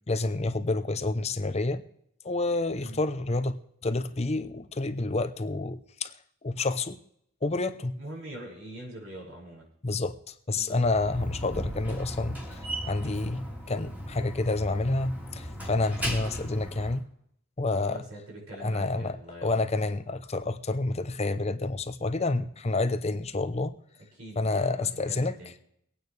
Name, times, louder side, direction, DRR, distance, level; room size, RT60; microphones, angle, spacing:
voice 1, 0.1-1.8 2.2-6.1 6.4-7.0 7.4-8.0 9.8-10.1 10.5-12.6 12.8-17.0 17.6-18.0 18.6-23.7 24.4-25.4, left 2 dB, 30° left, 10 dB, 0.7 m, -29 dB
voice 2, 7.9-9.7 10.5-10.8 17.7-19.9 24.1-25.5, right 1 dB, 75° right, -2 dB, 5.9 m, -44 dB
Slam, 10.8-17.0, equal, 5° right, 2.6 m, -36 dB
24.0 x 9.3 x 3.3 m, 0.72 s
head